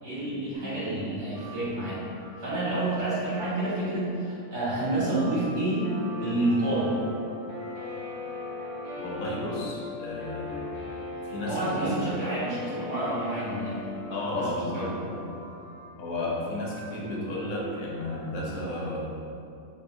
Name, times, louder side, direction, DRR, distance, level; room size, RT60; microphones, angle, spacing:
voice 1, 0.0-2.0 2.4-5.9 6.2-6.9 11.4-13.8 14.2-14.9, right 2 dB, 60° right, -10 dB, 1.8 m, -29 dB
sound 1, 1.3-12.2 13.1-18.4, right 1 dB, 15° left, 0.6 m, -49 dB
Guitar, 5.8-14.5, left 3 dB, 55° left, 1.1 m, -38 dB
voice 2, 9.0-10.9 11.2-12.4 14.1-15.3 16.0-19.0, left 1 dB, 90° left, -4 dB, 1.2 m, -33 dB
4.9 x 2.8 x 2.6 m, 2.6 s
omnidirectional pair, 1.4 m